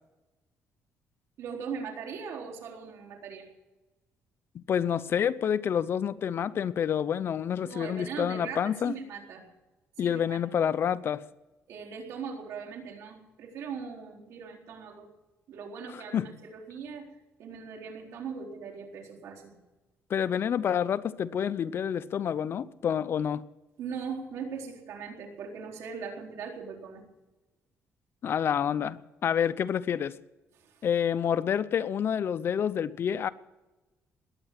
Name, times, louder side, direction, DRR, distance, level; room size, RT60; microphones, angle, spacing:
voice 1, 1.4-3.4 7.6-9.5 10.0-10.4 11.7-15.1 15.5-17.1 17.4-19.6 23.8-27.1 30.6-30.8, right 6 dB, 75° right, 4.2 m, -40 dB
voice 2, 4.5-8.9 10.0-11.2 15.9-16.3 20.1-23.4 28.2-30.2 30.8-33.3, left 8 dB, 50° left, 0.7 m, -28 dB
20.5 x 9.2 x 7.6 m
cardioid pair, 125°, 5 cm